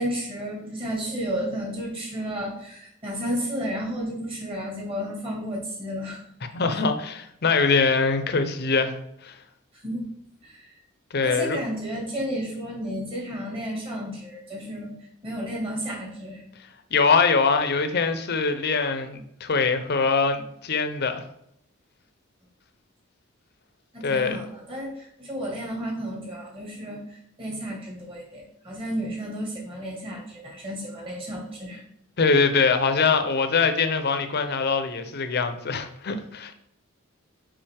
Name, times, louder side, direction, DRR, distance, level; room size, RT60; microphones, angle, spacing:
voice 1, 0.0-6.2 6.7-6.8 9.7-10.1 10.4-10.8 11.2-16.4 23.9-31.8, equal, 30° right, -1 dB, 1.8 m, -32 dB
voice 2, 6.5-9.0 9.2-9.3 11.1-11.6 16.9-21.2 24.0-24.4 32.2-36.5, left 4 dB, 55° left, 8 dB, 0.7 m, -23 dB
5.5 x 5.1 x 3.4 m, 0.72 s
head